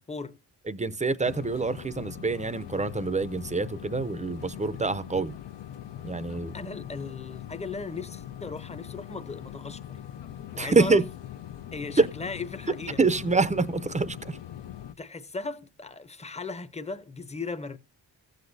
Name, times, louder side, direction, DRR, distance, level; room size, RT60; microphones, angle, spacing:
voice 1, 0.1-0.4 6.5-10.0 10.5-11.0 11.7-13.0 15.0-17.8, left 4 dB, 15° left, 0.7 m, -37 dB
voice 2, 0.7-5.3 6.0-6.6 10.6-11.0 12.0-12.1 13.0-14.4, right 3 dB, 15° right, 0.5 m, -26 dB
sound 1, 1.2-14.9, left 11 dB, 75° left, 0.7 m, -41 dB
15.5 x 8.0 x 2.6 m
wide cardioid pair, 115°, 43 cm